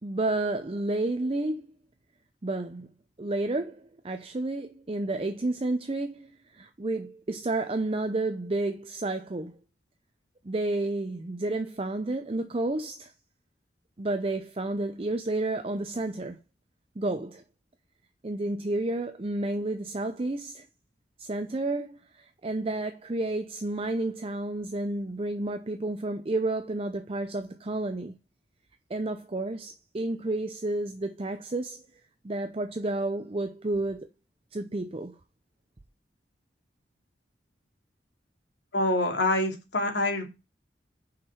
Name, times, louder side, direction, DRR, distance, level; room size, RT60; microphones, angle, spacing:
voice 1, 0.0-1.7 2.4-2.9 3.2-9.6 10.4-13.1 14.0-16.4 17.0-17.4 18.2-20.7 21.2-28.2 28.9-31.8 32.2-34.1 34.5-35.2, right 2 dB, 30° right, 0.6 m, -31 dB
voice 2, 38.7-40.2, left 2 dB, 75° left, 2.7 m, -26 dB
6.6 x 5.6 x 6.6 m
head